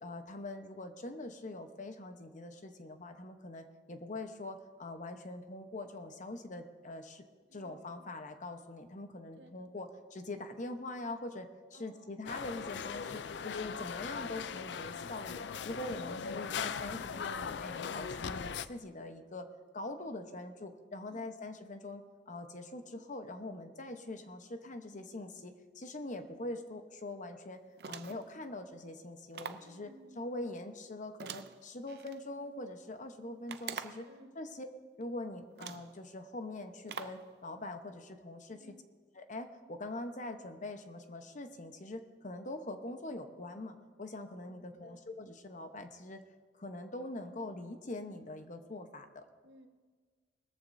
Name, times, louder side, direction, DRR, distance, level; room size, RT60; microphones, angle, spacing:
voice 1, 0.0-7.2 7.5-19.5 19.7-27.6 27.9-29.9 30.2-34.1 34.4-34.7 35.0-38.7 39.2-46.2 46.6-49.2, left 2 dB, 45° left, 7 dB, 1.0 m, -43 dB
voice 2, 7.5-8.1 9.4-9.7 11.7-12.3 21.1-21.6 29.6-30.2 34.0-34.4 38.5-38.9 44.4-45.0 49.4-49.7, equal, 80° right, 4 dB, 1.3 m, -59 dB
sound 1, 12.3-18.7, left 6 dB, 70° left, 0.4 m, -39 dB
sound 2, 27.8-28.3 29.3-29.7 31.2-32.2 33.5-34.1 35.0-35.1 35.6-35.9 36.9-37.3, right 7 dB, 65° right, 0.6 m, -44 dB
20.0 x 14.0 x 2.7 m, 1.5 s
head